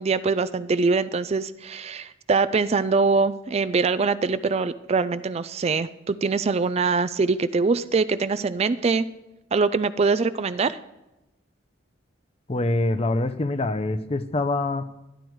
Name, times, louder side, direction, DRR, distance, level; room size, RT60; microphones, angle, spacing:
voice 1, 0.0-9.1 9.5-10.8, right 4 dB, 35° right, 14 dB, 0.4 m, -23 dB
voice 2, 12.5-14.9, left 2 dB, 30° left, 12 dB, 0.6 m, -25 dB
12.0 x 11.5 x 4.6 m, 0.95 s
head